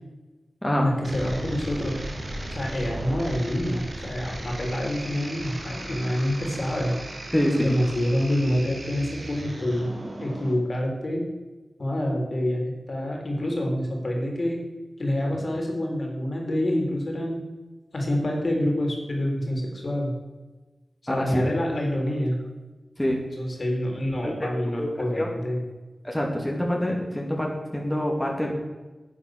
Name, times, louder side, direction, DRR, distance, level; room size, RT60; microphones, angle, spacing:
voice 1, 0.8-2.0 2.5-6.9 7.6-9.9 10.2-11.3 11.8-12.6 12.9-14.6 15.0-17.4 17.9-20.2 21.1-22.4 23.4-25.6, left 1 dB, 55° left, 1 dB, 3.6 m, -27 dB
sound 1, 1.0-10.5, right 1 dB, 65° right, 2.9 m, -36 dB
voice 2, 7.3-7.7 21.1-21.5 23.0-23.2 24.2-24.5 24.8-24.9 25.2-25.3 26.0-28.5, equal, 10° left, -1 dB, 2.6 m, -25 dB
10.0 x 9.1 x 6.6 m, 1.2 s
cardioid pair, 50°, 0 cm